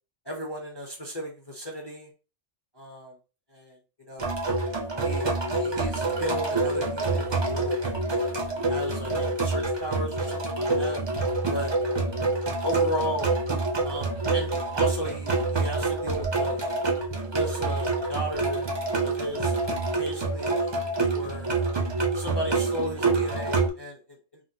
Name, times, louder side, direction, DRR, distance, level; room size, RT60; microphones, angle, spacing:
voice 1, 0.2-2.1 2.7-3.1 3.5-4.3 5.0-8.3 8.7-11.0 11.5-11.8 12.6-13.3 13.8-16.6 17.3-18.7 19.0-19.5 20.0-20.6 21.1-21.5 22.1-24.4, equal, 25° left, -1 dB, 0.6 m, -34 dB
sound 1, 4.2-23.7, right 3 dB, 35° right, 0.4 m, -27 dB
3.5 x 2.2 x 2.7 m, 0.33 s
omnidirectional pair, 1.3 m